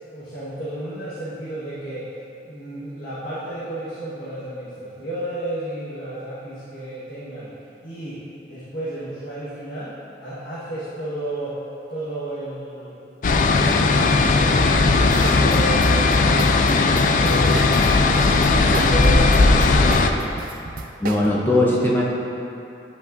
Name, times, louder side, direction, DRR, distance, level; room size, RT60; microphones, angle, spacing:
voice 1, 0.1-2.1 2.4-7.5 7.8-11.6 11.9-13.0 13.2-20.3, right 1 dB, 85° left, -11 dB, 1.4 m, -33 dB
sound 1, 13.2-20.1, left 3 dB, 45° left, 0.4 m, -17 dB
sound 2, 15.1-21.3, right 3 dB, 50° right, 0.4 m, -33 dB
voice 2, 21.0-22.0, left 1 dB, 10° left, -5 dB, 0.6 m, -19 dB
10.5 x 5.4 x 2.6 m, 2.9 s
head